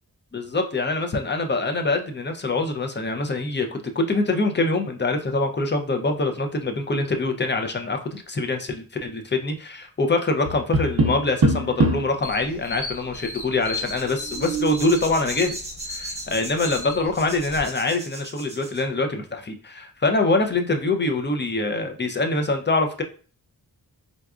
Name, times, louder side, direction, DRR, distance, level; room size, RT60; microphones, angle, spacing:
voice 1, 0.3-23.0, left 3 dB, 30° left, 5 dB, 0.5 m, -24 dB
Tap, 10.4-12.2 14.2-14.9, right 2 dB, 65° right, 0.7 m, -23 dB
sound 1, 12.2-17.6, left 3 dB, 90° left, 0.8 m, -37 dB
sound 2, 13.6-18.8, right 1 dB, 15° right, 0.7 m, -38 dB
3.9 x 2.3 x 2.4 m, 0.40 s
wide cardioid pair, 60°, 38 cm